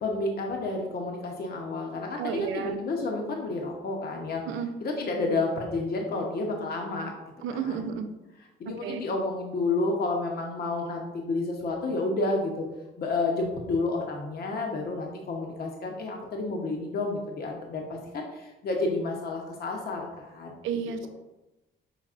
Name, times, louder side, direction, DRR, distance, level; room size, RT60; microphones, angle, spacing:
voice 1, 0.0-4.4 4.8-7.1 7.5-7.9 8.6-12.6 13.0-20.5, left 3 dB, 50° left, 1 dB, 0.8 m, -30 dB
voice 2, 2.2-2.8 4.5-4.7 7.4-8.1 8.8-9.0 20.6-21.1, right 7 dB, 85° right, 7 dB, 0.5 m, -31 dB
5.7 x 3.2 x 2.4 m, 1.0 s
cardioid pair, 90°, 20 cm